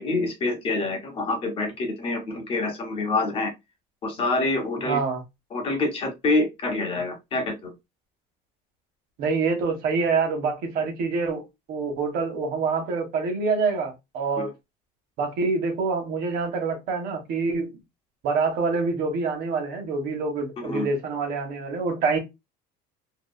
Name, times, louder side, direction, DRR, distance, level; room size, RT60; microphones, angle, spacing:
voice 1, 0.0-3.5 4.0-5.0 5.5-7.7 14.4-14.5 20.6-20.9, left 2 dB, 30° left, 0.8 m, -26 dB
voice 2, 4.9-5.2 9.2-14.5 15.2-17.7 18.2-22.2, right 4 dB, 55° right, 0.9 m, -26 dB
2.7 x 2.3 x 2.2 m
cardioid pair, 140°, 18 cm